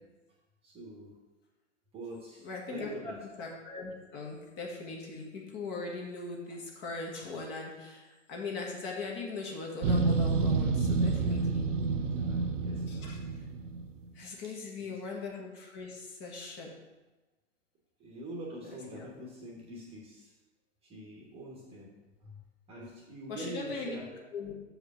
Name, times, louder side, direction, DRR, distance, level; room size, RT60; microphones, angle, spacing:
voice 1, 0.6-1.2 1.9-3.2 12.1-13.2 14.4-15.0 16.4-16.6 18.0-20.3 20.8-22.4 22.7-24.1, right 1 dB, 15° right, -2 dB, 1.2 m, -45 dB
voice 2, 2.4-11.7 12.9-13.2 14.1-16.7 18.6-19.1 23.3-24.0 24.3-24.5, left 3 dB, 30° left, -1 dB, 1.4 m, -40 dB
sound 1, 9.8-14.0, right 4 dB, 80° right, 0.7 m, -29 dB
6.5 x 5.1 x 6.1 m, 1.1 s
hypercardioid pair, 130°, 36 cm